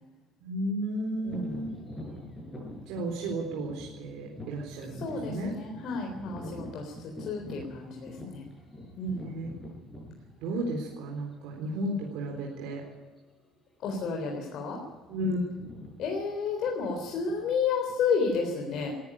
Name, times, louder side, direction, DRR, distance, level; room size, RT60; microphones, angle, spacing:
voice 1, 0.4-1.7 2.9-5.0 5.2-5.5 8.2-8.3 9.1-9.5 10.4-12.8 15.1-15.5, right 1 dB, 75° right, 0 dB, 4.0 m, -33 dB
voice 2, 1.2-1.7 4.9-6.9 7.3-8.4 9.0-9.3 13.8-14.8 16.0-18.9, left 5 dB, 50° left, 1 dB, 3.8 m, -31 dB
sound 1, 1.2-11.0 11.7-11.8 12.4-12.7 12.9-13.2 13.8-14.4 14.6-18.1, left 1 dB, 10° left, 7.7 m, -45 dB
19.0 x 14.0 x 10.0 m, 1.3 s
cardioid pair, 155°, 0 cm